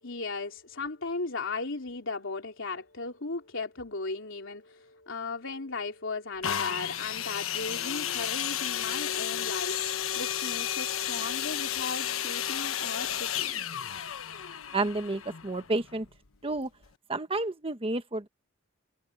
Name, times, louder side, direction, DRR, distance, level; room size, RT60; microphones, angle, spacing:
voice 1, 0.0-14.0, left 3 dB, 65° left, 3.7 m, -37 dB
sound 1, 6.4-16.1 16.8-16.9, left 10 dB, 90° left, 1.2 m, -32 dB
voice 2, 14.7-16.0 16.4-16.7 17.1-18.3, right 2 dB, 30° right, 1.1 m, -30 dB
head